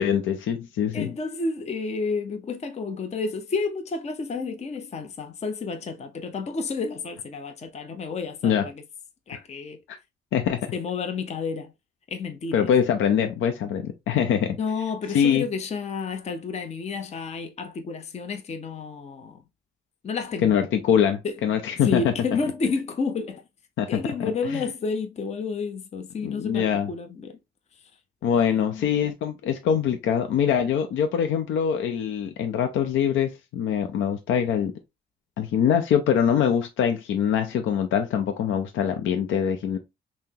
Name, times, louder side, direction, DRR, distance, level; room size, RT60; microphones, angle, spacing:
voice 1, 0.0-1.1 8.4-8.7 9.9-10.0 10.3-10.7 12.5-14.6 15.1-15.4 20.4-22.0 23.8-23.9 24.5-24.6 26.2-26.9 28.2-34.7 35.4-39.8, left 8 dB, 75° left, 0.6 m, -23 dB
voice 2, 0.9-8.8 9.3-9.8 10.7-11.7 12.1-12.7 14.6-19.4 20.0-20.6 21.2-21.4 21.8-23.4 23.9-27.4 28.3-28.9, left 4 dB, 35° left, 0.6 m, -30 dB
5.6 x 2.0 x 2.7 m
cardioid pair, 90°, 20 cm